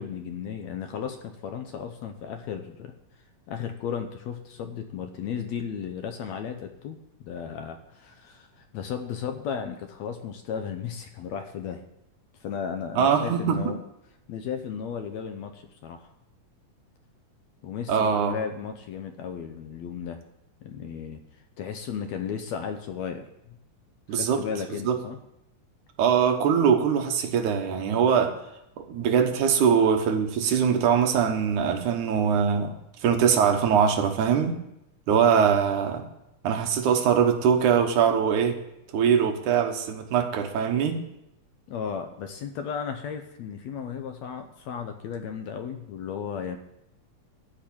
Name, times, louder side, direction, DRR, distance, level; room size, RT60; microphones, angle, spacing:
voice 1, 0.0-2.9 3.5-11.8 12.4-13.8 14.3-16.0 17.6-20.2 20.6-21.2 21.6-23.6 24.1-25.2 41.7-46.6, left 7 dB, 70° left, 6 dB, 1.8 m, -35 dB
voice 2, 13.0-13.7 17.9-18.4 24.1-24.4 24.7-25.0 26.0-28.4 28.8-32.7 33.0-34.6 35.1-36.1 36.4-38.6 38.9-41.0, right 7 dB, 75° right, 4 dB, 2.5 m, -22 dB
13.5 x 5.3 x 8.5 m, 0.84 s
omnidirectional pair, 3.6 m